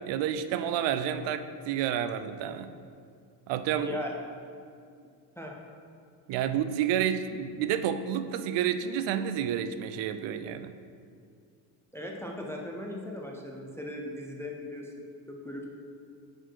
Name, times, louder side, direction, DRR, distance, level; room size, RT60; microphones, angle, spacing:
voice 1, 0.1-2.7 3.5-4.0 6.3-10.7, right 9 dB, 70° right, 11 dB, 0.5 m, -30 dB
voice 2, 3.8-4.2 5.4-5.6 11.9-15.6, left 1 dB, 5° left, 0 dB, 0.3 m, -38 dB
9.0 x 4.5 x 4.4 m, 2.3 s
cardioid pair, 165°, 45 cm